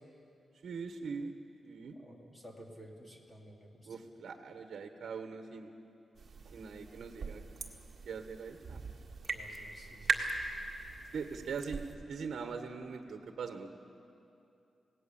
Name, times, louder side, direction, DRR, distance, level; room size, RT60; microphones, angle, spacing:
voice 1, 0.6-1.3 1.6-2.0 3.9-5.7 6.4-7.4 8.0-8.8 11.1-13.7, right 5 dB, 65° right, 6 dB, 1.2 m, -41 dB
voice 2, 2.0-3.9 9.3-10.5, equal, 20° left, 0 dB, 2.6 m, -53 dB
sound 1, 6.2-11.9, right 4 dB, 40° right, 1.8 m, -39 dB
26.5 x 18.0 x 7.1 m, 2.7 s
wide cardioid pair, 165°, 0 cm